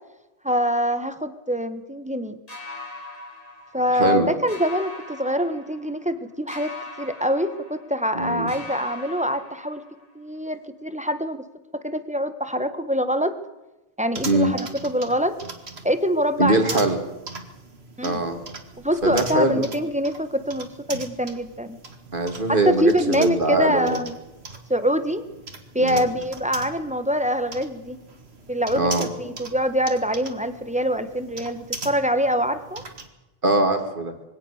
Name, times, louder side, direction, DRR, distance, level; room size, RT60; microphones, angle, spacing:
voice 1, 0.4-2.4 3.7-9.8 10.1-11.4 11.8-13.3 14.0-15.4 15.8-16.8 18.0-18.3 18.8-21.7 22.5-24.1 24.7-25.2 25.7-28.0 28.5-28.9 29.2-32.8, equal, 5° right, 10 dB, 1.3 m, -24 dB
sound 1, 2.5-4.2 4.5-6.1 6.5-8.2 8.5-10.2, left 2 dB, 40° left, 3.8 m, -40 dB
voice 2, 4.0-4.3 8.1-8.5 14.3-14.5 16.4-17.0 18.0-18.4 19.0-19.6 22.1-24.0 25.8-26.1 28.8-29.1 33.4-34.1, right 2 dB, 55° right, 6 dB, 2.5 m, -22 dB
sound 2, 14.1-33.1, right 3 dB, 90° right, 2.3 m, -39 dB
22.5 x 17.5 x 6.6 m, 1.0 s
omnidirectional pair, 1.0 m